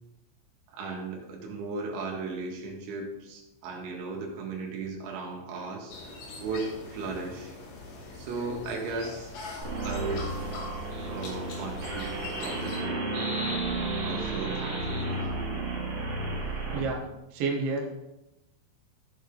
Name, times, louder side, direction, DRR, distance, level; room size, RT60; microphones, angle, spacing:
voice 1, 0.7-5.9 6.4-7.5 8.1-9.3 9.8-10.3 11.1-13.4 14.0-15.7, right 3 dB, 80° right, 0 dB, 4.2 m, -36 dB
sound 1, 5.9-12.8, left 3 dB, 70° left, 4.4 m, -42 dB
sound 2, 9.6-16.8, right 2 dB, 35° right, 2.7 m, -32 dB
voice 2, 16.7-17.0 17.3-18.0, right 3 dB, 65° right, 0 dB, 1.5 m, -29 dB
15.0 x 7.1 x 3.6 m, 0.92 s
omnidirectional pair, 5.5 m